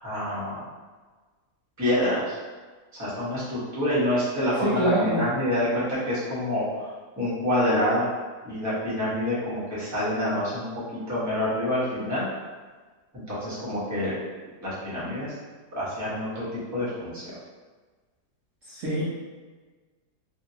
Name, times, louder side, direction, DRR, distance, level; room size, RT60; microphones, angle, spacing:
voice 1, 0.0-0.6 1.8-2.4 2.9-6.9 7.2-8.1 8.4-10.7 11.1-12.2 13.1-14.2 14.6-15.3 15.7-17.2, left 1 dB, 15° right, -11 dB, 0.9 m, -27 dB
voice 2, 4.6-5.2 18.7-19.0, right 1 dB, 60° right, -9 dB, 1.0 m, -24 dB
2.9 x 2.7 x 2.7 m, 1.4 s
omnidirectional pair, 1.8 m